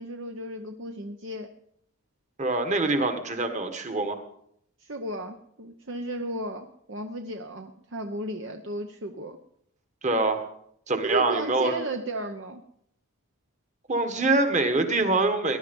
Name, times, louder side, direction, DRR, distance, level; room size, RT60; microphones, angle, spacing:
voice 1, 0.0-1.5 4.8-9.4 10.9-12.6, right 1 dB, 55° right, 5 dB, 0.9 m, -34 dB
voice 2, 2.4-4.2 10.0-10.5 10.9-11.8 13.9-15.6, right 2 dB, 30° right, 6 dB, 1.6 m, -24 dB
19.0 x 11.0 x 5.4 m, 0.71 s
head